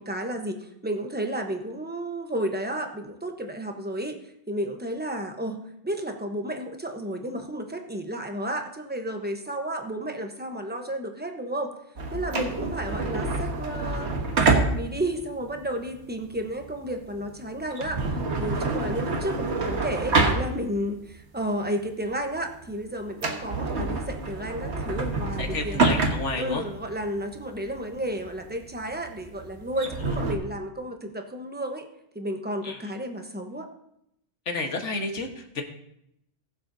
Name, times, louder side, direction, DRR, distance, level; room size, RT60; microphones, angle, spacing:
voice 1, 0.0-4.2 4.5-5.6 5.8-11.7 12.1-14.1 14.5-25.8 26.3-31.9 32.1-33.7, right 1 dB, 10° right, 4 dB, 1.0 m, -32 dB
sound 1, 12.0-21.0 21.4-21.5 22.1-22.3 22.6-22.7 23.1-30.4, right 3 dB, 70° right, 1.6 m, -27 dB
voice 2, 25.4-26.7 30.0-30.2 32.6-32.8 34.4-35.6, left 3 dB, 85° left, 3 dB, 1.8 m, -31 dB
20.0 x 7.5 x 2.8 m, 0.78 s
omnidirectional pair, 1.2 m